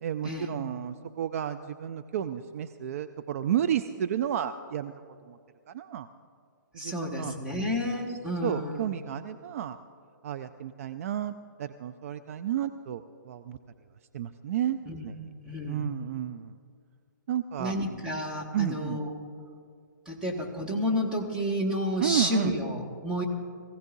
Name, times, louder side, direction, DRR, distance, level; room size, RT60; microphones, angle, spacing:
voice 1, 0.0-4.9 5.3-5.4 5.7-6.1 6.7-7.3 8.4-9.8 10.2-11.3 11.6-13.6 14.1-15.3 15.7-16.5 17.3-17.7 18.5-19.0 22.0-22.5, right 10 dB, 45° right, 10 dB, 0.5 m, -31 dB
voice 2, 6.8-8.9 14.9-15.1 15.5-15.9 17.6-19.1 20.1-23.2, left 1 dB, 5° right, -3 dB, 1.9 m, -30 dB
22.5 x 16.0 x 2.7 m, 2.2 s
figure-of-eight pair, 130°, 11 cm